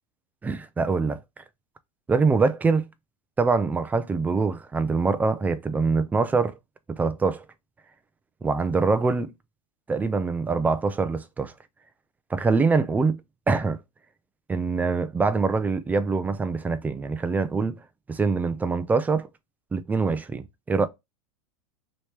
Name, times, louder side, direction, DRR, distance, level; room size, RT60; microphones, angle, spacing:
voice 1, 0.4-1.2 2.1-2.9 3.4-6.6 6.9-7.4 8.4-9.3 9.9-11.5 12.3-13.2 13.5-13.8 14.5-17.8 18.1-19.3 19.7-20.9, right 4 dB, 10° right, 0.4 m, -24 dB
3.1 x 2.8 x 3.2 m
hypercardioid pair, 115°, 18 cm